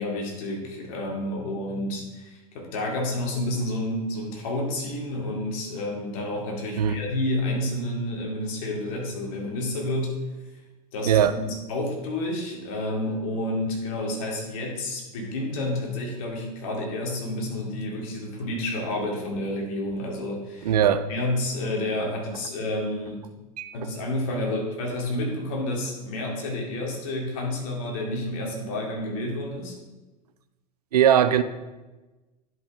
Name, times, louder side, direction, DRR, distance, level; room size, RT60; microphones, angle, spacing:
voice 1, 0.0-10.2 10.9-20.7 21.1-23.2 23.7-29.7, left 1 dB, 55° left, -1 dB, 2.3 m, -30 dB
voice 2, 11.1-11.4 20.6-21.1 23.6-23.9 30.9-31.4, right 9 dB, 70° right, 12 dB, 0.5 m, -20 dB
10.5 x 5.4 x 3.6 m, 1.1 s
figure-of-eight pair, 85°, 20 cm